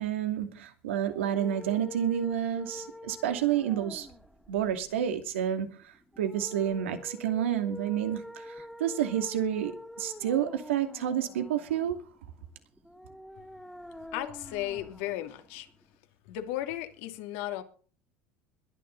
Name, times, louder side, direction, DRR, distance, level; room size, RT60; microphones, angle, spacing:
voice 1, 0.0-4.1 4.5-12.0, right 10 dB, 85° right, 2.5 m, -30 dB
sound 1, 1.0-16.0, left 1 dB, ahead, 2.5 m, -46 dB
voice 2, 14.1-15.7 16.3-17.6, left 13 dB, 70° left, 2.8 m, -35 dB
21.5 x 10.5 x 4.1 m
hypercardioid pair, 85°, 6 cm